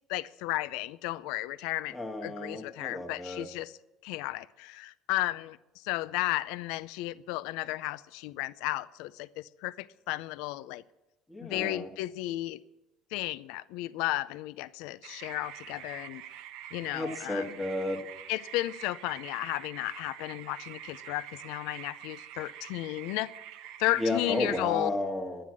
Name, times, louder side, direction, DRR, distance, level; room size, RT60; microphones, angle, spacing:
voice 1, 0.1-2.0 2.2-3.7 4.0-10.8 11.4-12.6 13.1-16.2 16.7-17.6 18.3-23.3 23.8-24.9, left 17 dB, 80° left, 17 dB, 0.4 m, -34 dB
voice 2, 1.9-3.5 11.3-11.9 16.9-18.0 24.0-25.4, left 2 dB, 5° left, 1 dB, 1.3 m, -32 dB
sound 1, 15.0-24.6, right 11 dB, 80° right, 0.9 m, -46 dB
12.0 x 10.0 x 7.4 m, 0.98 s
cardioid pair, 160°, 0 cm